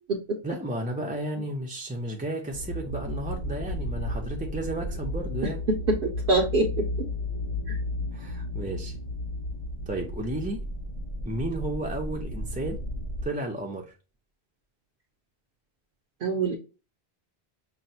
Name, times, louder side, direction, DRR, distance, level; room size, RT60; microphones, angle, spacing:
voice 1, 0.4-5.6 8.1-8.9 9.9-10.6 11.2-12.8 13.2-13.9, right 1 dB, 10° right, 0.6 m, -33 dB
sound 1, 2.5-13.3, left 1 dB, 40° left, 1.3 m, -33 dB
voice 2, 5.4-6.9 7.7-7.8 16.2-16.6, right 2 dB, 65° right, 0.9 m, -25 dB
5.9 x 2.3 x 2.7 m
omnidirectional pair, 1.1 m